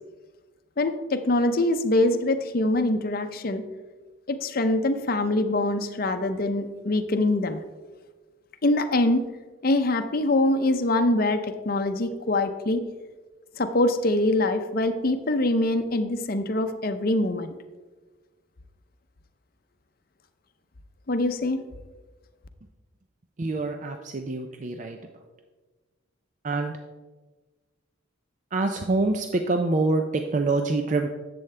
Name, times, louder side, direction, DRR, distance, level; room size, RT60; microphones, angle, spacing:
voice 1, 0.8-3.6 4.3-7.6 8.6-9.2 9.6-12.8 13.6-17.5 21.1-21.6, left 2 dB, 45° left, 8 dB, 0.6 m, -24 dB
voice 2, 23.4-25.0 26.4-26.8 28.5-31.1, right 3 dB, 40° right, 5 dB, 0.4 m, -26 dB
10.5 x 7.7 x 3.3 m, 1.3 s
head